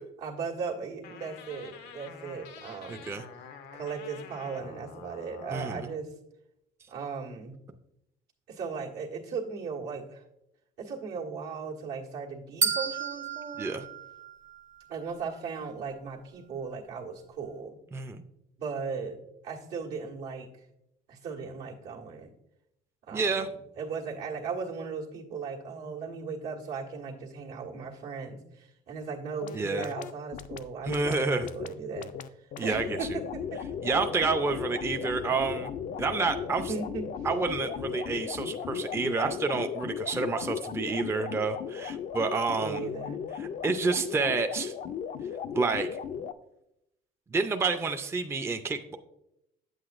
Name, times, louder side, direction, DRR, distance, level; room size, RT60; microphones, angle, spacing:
voice 1, 0.2-3.1 3.7-6.1 6.9-7.6 8.5-10.2 10.8-13.7 14.9-17.8 18.6-20.6 21.1-22.3 23.1-23.5 23.8-32.1 32.4-34.0 36.6-37.0 42.5-43.4, right 5 dB, 80° right, -4 dB, 1.5 m, -37 dB
sound 1, 1.0-6.0, left 6 dB, 85° left, 0.7 m, -47 dB
voice 2, 2.9-3.3 5.5-5.9 13.6-13.8 17.9-18.2 23.1-23.5 29.5-29.9 30.8-31.5 32.6-32.9 33.8-35.7 36.0-36.7 37.2-42.8 43.4-44.7 45.5-45.9 47.3-49.0, right 4 dB, 15° right, 6 dB, 0.4 m, -29 dB
sound 2, 12.6-14.9, right 6 dB, 45° right, 0.8 m, -32 dB
sound 3, 29.4-46.3, left 8 dB, 50° left, 0.4 m, -36 dB
8.2 x 7.9 x 2.5 m, 0.84 s
cardioid pair, 110°, 17 cm